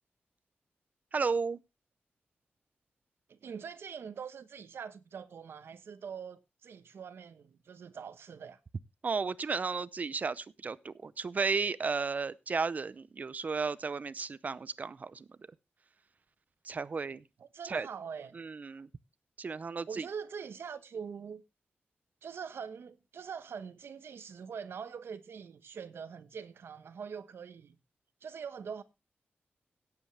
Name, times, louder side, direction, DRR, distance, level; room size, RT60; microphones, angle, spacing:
voice 1, 1.1-1.6 9.0-15.3 16.6-17.2 17.6-17.9 18.3-18.9 19.4-20.1, right 4 dB, 40° right, 0.6 m, -34 dB
voice 2, 3.3-8.6 17.4-18.3 19.9-21.4 22.2-27.8 28.2-28.8, right 6 dB, 85° right, 1.0 m, -43 dB
17.0 x 8.1 x 3.3 m
wide cardioid pair, 130°, 4 cm